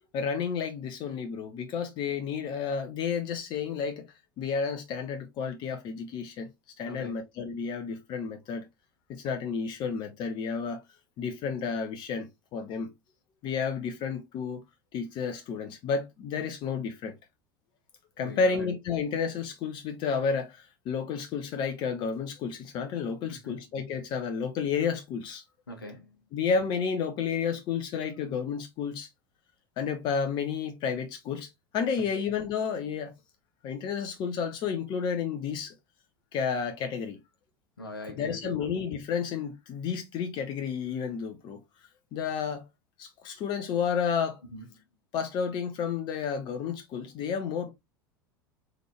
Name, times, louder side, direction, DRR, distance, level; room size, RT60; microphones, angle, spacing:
voice 1, 0.1-4.1 4.4-6.5 6.8-8.6 9.2-10.8 11.2-12.9 13.4-14.6 14.9-17.1 18.2-25.4 26.3-29.1 29.8-31.5 31.7-33.1 33.6-35.7 36.3-37.2 38.1-41.6 42.1-42.6 43.0-44.4 45.1-47.7, left 6 dB, 40° left, 0.9 m, -31 dB
voice 2, 6.9-7.2 18.2-18.7 23.4-23.6 25.7-26.2 32.1-32.2 37.8-38.5 44.5-44.8, left 1 dB, 80° left, 1.2 m, -42 dB
3.9 x 3.5 x 3.1 m
figure-of-eight pair, 80°, 12 cm